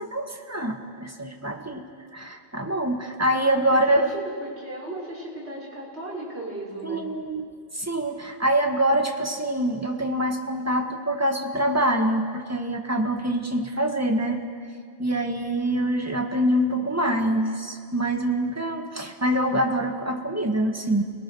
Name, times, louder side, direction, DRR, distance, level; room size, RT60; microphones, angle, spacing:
voice 1, 0.0-4.1 6.8-7.4 7.7-14.4 15.0-21.0, right 1 dB, 15° right, 3 dB, 1.7 m, -25 dB
voice 2, 3.4-7.0, right 1 dB, 70° right, -5 dB, 6.2 m, -36 dB
30.0 x 19.5 x 6.4 m, 2.1 s
omnidirectional pair, 1.1 m